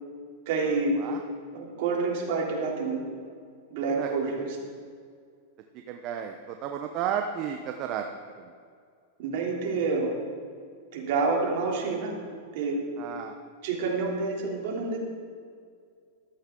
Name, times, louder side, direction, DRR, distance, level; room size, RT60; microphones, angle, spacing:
voice 1, 0.5-1.0 1.5-3.1 3.7-4.5 9.2-10.1 10.9-12.2 12.5-12.8 13.6-15.0, right 4 dB, 60° right, -1 dB, 3.1 m, -28 dB
voice 2, 3.9-4.4 5.7-8.1 8.4-8.5 13.0-13.4, right 8 dB, 45° right, 4 dB, 0.8 m, -33 dB
13.5 x 13.0 x 3.8 m, 2.1 s
hypercardioid pair, 125°, 0 cm